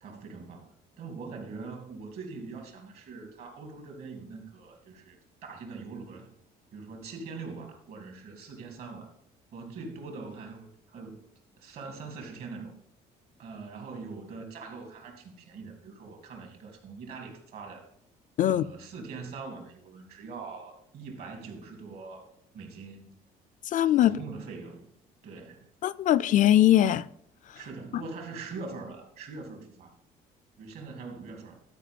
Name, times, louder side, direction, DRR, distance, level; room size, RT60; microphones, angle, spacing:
voice 1, 0.0-6.3 6.7-9.1 9.5-11.2 11.6-12.8 13.4-17.8 18.4-23.1 24.0-24.9 25.2-25.7 27.5-29.9 30.6-31.6, right 4 dB, 65° right, 2.7 m, -42 dB
voice 2, 23.6-24.2 25.8-27.1 27.9-28.0, left 12 dB, 50° left, 0.4 m, -21 dB
12.5 x 5.0 x 5.3 m
cardioid pair, 110°, 17 cm